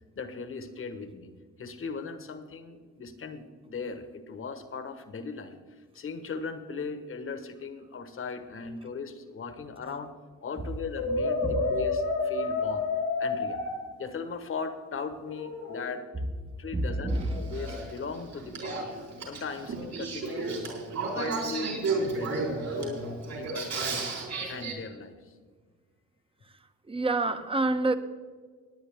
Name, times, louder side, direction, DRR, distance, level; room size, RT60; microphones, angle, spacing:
voice 1, 0.2-1.3 1.6-10.1 10.4-12.9 13.2-13.6 14.0-16.0 16.6-18.9 19.2-20.8 21.1-23.0 23.3-23.7 24.5-25.4, left 4 dB, 45° left, 1.4 m, -38 dB
Brass instrument, 11.0-13.7 15.3-15.8, left 3 dB, 85° left, 3.4 m, -29 dB
voice 2, 16.7-17.4 26.9-28.0, right 2 dB, 20° right, 1.0 m, -27 dB
Male speech man speaking / Female speech woman speaking / Conversation, 17.1-24.7, right 3 dB, 65° right, 4.1 m, -33 dB
18.0 x 9.7 x 3.7 m
cardioid pair, 90°, 30 cm